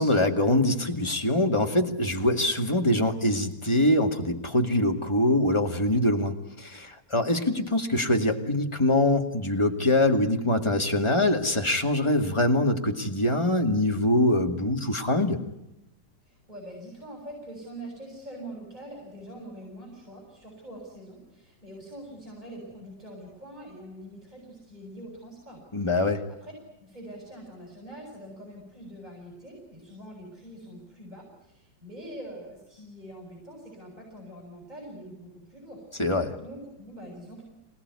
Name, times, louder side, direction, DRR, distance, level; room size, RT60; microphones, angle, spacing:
voice 1, 0.0-15.4 25.7-26.2 36.0-36.4, left 1 dB, 15° left, 3 dB, 2.3 m, -24 dB
voice 2, 16.3-25.6 26.4-26.5 26.8-35.8 36.3-37.4, right 1 dB, 25° right, -1 dB, 7.7 m, -44 dB
27.0 x 18.5 x 9.7 m, 0.90 s
omnidirectional pair, 1.9 m